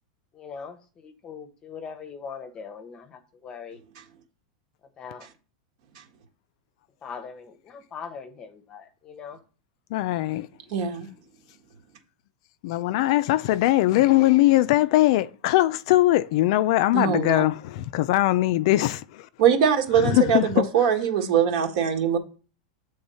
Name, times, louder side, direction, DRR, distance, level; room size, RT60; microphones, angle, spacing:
voice 1, 0.3-3.8 5.0-5.3 7.0-9.4, left 6 dB, 20° left, 0.8 m, -41 dB
voice 2, 9.9-10.5 12.6-19.3 20.0-20.7, left 16 dB, 55° left, 0.4 m, -21 dB
voice 3, 10.7-11.1 16.9-17.4 19.4-22.2, right 8 dB, 55° right, 1.5 m, -22 dB
7.9 x 3.5 x 5.5 m
supercardioid pair, 155°, 4 cm